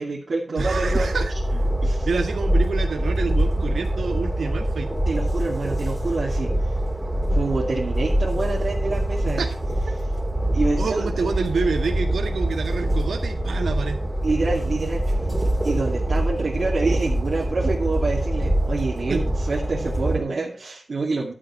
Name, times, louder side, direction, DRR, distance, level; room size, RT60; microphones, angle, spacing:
voice 1, 0.0-1.1 1.8-2.1 5.1-6.5 7.3-9.4 10.5-11.1 14.2-15.2 15.6-21.3, right 3 dB, 55° right, -4 dB, 2.5 m, -27 dB
voice 2, 0.5-1.6 2.0-4.9 9.3-9.5 10.8-14.0 19.1-19.2, right 4 dB, 80° right, 4 dB, 1.8 m, -28 dB
Train, 0.6-20.2, right 1 dB, 15° right, 2.7 m, -24 dB
12.0 x 9.3 x 4.4 m, 0.37 s
wide cardioid pair, 145°, 0 cm